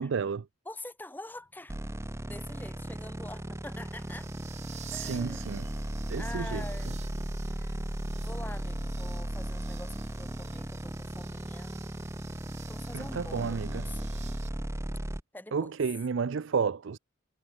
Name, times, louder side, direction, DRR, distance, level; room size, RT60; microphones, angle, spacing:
voice 1, 0.0-0.5 4.9-5.6 6.1-6.7 12.9-13.8 15.5-17.0, right 5 dB, 60° right, 0.4 m, -31 dB
voice 2, 0.7-1.7 2.3-4.3 4.9-5.5 5.8-7.0 7.4-7.8 8.1-11.8 12.7-14.1 15.3-15.7, left 1 dB, 10° left, 2.1 m, -45 dB
sound 1, 1.4-14.5, right 9 dB, 30° right, 2.3 m, -52 dB
sound 2, 1.7-15.2, right 1 dB, 15° right, 0.9 m, -36 dB
head